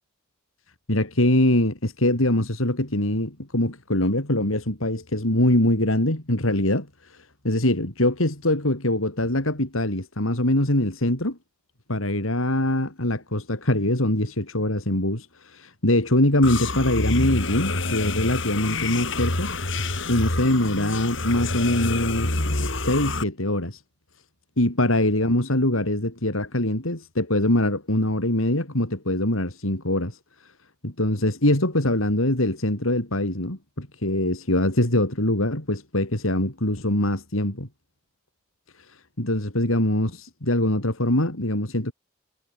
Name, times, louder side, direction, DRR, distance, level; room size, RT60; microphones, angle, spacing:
voice 1, 0.9-7.2 7.4-11.4 11.9-19.5 20.1-22.4 22.8-23.8 24.6-30.2 30.8-37.7 39.2-41.9, left 1 dB, 85° left, 4.9 m, -23 dB
sound 1, 16.4-23.2, left 2 dB, 65° left, 5.6 m, -27 dB
head